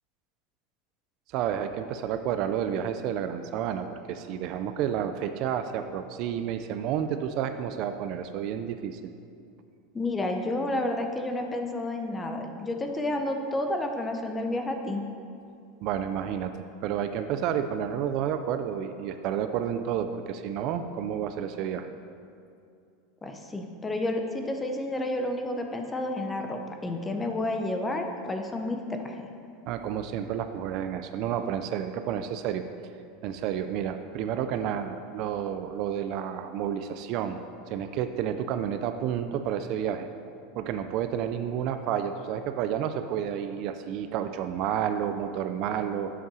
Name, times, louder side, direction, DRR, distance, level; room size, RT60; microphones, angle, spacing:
voice 1, 1.3-9.1 15.8-16.5 16.8-21.9 29.7-32.7 33.2-40.1 40.5-46.1, right 9 dB, 40° right, 9 dB, 0.3 m, -30 dB
voice 2, 9.9-15.0 23.2-29.3, left 1 dB, 10° left, 4 dB, 0.5 m, -30 dB
7.3 x 5.6 x 6.1 m, 2.5 s
supercardioid pair, 170°, 0 cm